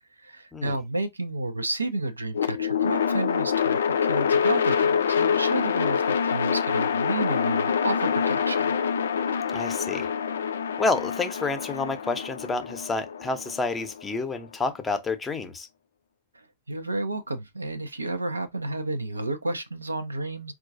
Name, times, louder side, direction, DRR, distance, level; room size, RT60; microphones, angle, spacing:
voice 1, 0.2-8.7 16.3-20.5, right 2 dB, 80° right, 0.5 m, -31 dB
sound 1, 2.3-14.5, left 7 dB, 70° left, 0.4 m, -26 dB
voice 2, 9.5-10.1 10.8-15.7, left 3 dB, 15° left, 0.7 m, -29 dB
4.5 x 2.4 x 2.5 m
figure-of-eight pair, 90°, 0 cm